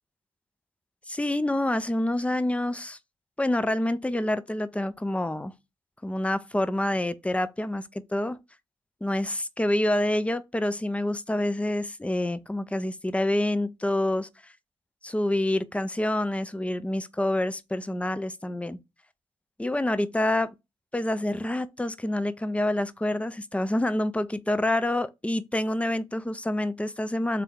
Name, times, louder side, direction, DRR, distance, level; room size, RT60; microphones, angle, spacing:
voice 1, 1.1-3.0 3.4-5.5 6.0-8.4 9.0-14.3 15.0-18.8 19.6-20.5 20.9-27.4, left 1 dB, 10° left, 0.6 m, -27 dB
3.6 x 3.3 x 4.4 m
hypercardioid pair, 40°, 12 cm